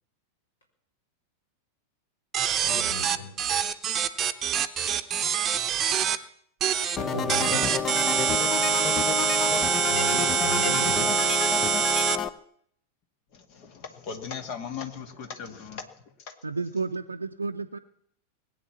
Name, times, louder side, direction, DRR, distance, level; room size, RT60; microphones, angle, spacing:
sound 1, 2.3-6.2 6.6-7.0 7.3-12.2, right 8 dB, 25° right, 1.0 m, -25 dB
voice 1, 2.6-3.3 6.8-7.7 9.8-11.2, left 1 dB, 65° left, 1 dB, 4.3 m, -35 dB
sound 2, 7.0-12.3, left 6 dB, 25° left, 0.8 m, -29 dB
voice 2, 13.3-16.4, left 6 dB, 45° left, 8 dB, 2.1 m, -38 dB
voice 3, 16.4-17.8, right 4 dB, 80° right, 3 dB, 0.6 m, -31 dB
20.5 x 9.0 x 7.2 m, 0.67 s
figure-of-eight pair, 90°, 0 cm